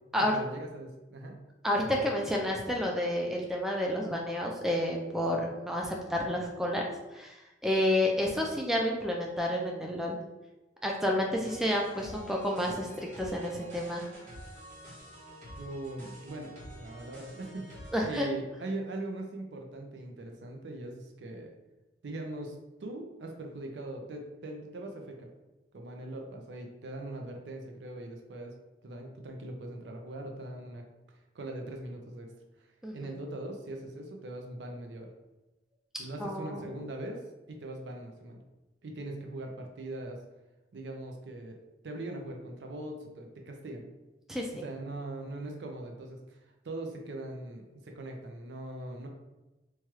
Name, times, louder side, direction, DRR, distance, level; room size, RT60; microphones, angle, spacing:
voice 1, 0.2-1.4 1.8-2.1 15.6-21.5 22.0-25.3 25.7-28.5 28.8-30.8 31.3-32.3 32.6-35.1 36.0-38.4 38.8-40.2 40.7-41.6 41.8-43.9 44.6-49.1, right 1 dB, 80° right, 3 dB, 0.5 m, -41 dB
voice 2, 1.6-6.8 7.1-10.2 10.8-14.0 17.9-18.3 32.8-33.1 36.2-36.7 44.3-44.6, left 1 dB, 5° right, -1 dB, 0.3 m, -30 dB
sound 1, 11.4-18.3, right 1 dB, 40° right, 1.4 m, -48 dB
3.0 x 2.3 x 3.0 m, 1.0 s
head